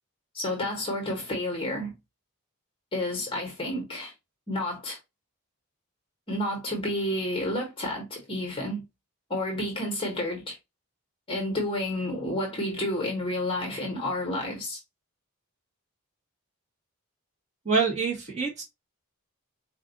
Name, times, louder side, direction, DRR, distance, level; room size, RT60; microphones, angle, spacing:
voice 1, 0.3-1.9 2.9-4.1 4.5-5.0 6.3-8.8 9.3-10.6 11.3-14.8, left 1 dB, 25° left, 1.1 m, -30 dB
voice 2, 17.6-18.6, right 5 dB, 30° right, 1.6 m, -26 dB
4.5 x 2.6 x 3.9 m
head